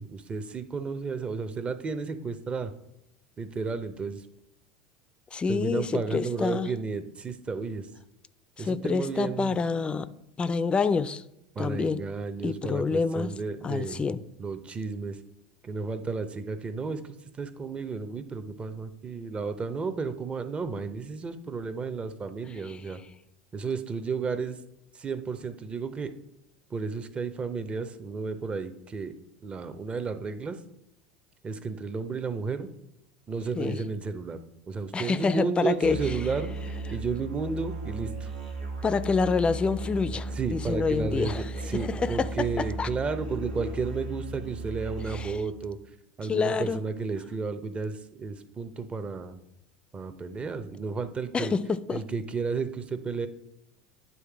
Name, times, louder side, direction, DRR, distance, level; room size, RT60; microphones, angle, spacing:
voice 1, 0.0-2.7 3.4-4.3 5.5-7.9 8.6-9.5 11.5-14.0 14.4-15.2 15.6-23.0 23.5-24.6 24.9-26.1 26.7-29.1 29.4-30.6 31.4-32.7 33.3-34.4 34.7-38.3 40.3-45.8 46.2-49.4 49.9-51.5 51.9-53.3, right 4 dB, 25° right, 0.8 m, -32 dB
voice 2, 5.3-6.7 8.6-10.1 10.4-11.2 11.6-12.0 12.4-13.3 13.6-14.2 22.7-22.8 33.6-33.8 34.9-36.0 38.8-41.4 41.7-42.5 42.8-42.9 45.1-45.4 46.3-46.8 51.3-52.0, left 5 dB, 25° left, 0.4 m, -27 dB
Musical instrument, 35.8-45.6, right 2 dB, 85° right, 1.5 m, -36 dB
9.4 x 3.2 x 4.7 m
hypercardioid pair, 80°, 4 cm